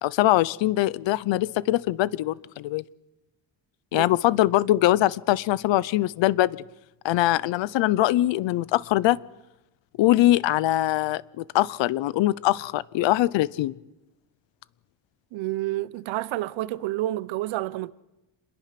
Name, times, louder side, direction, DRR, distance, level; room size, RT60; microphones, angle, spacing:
voice 1, 0.0-2.8 3.9-6.6 7.0-9.2 10.0-13.8, left 15 dB, 70° left, 0.8 m, -22 dB
voice 2, 15.3-17.9, right 16 dB, 75° right, 0.8 m, -29 dB
27.0 x 21.5 x 5.9 m
cardioid pair, 170°, 47 cm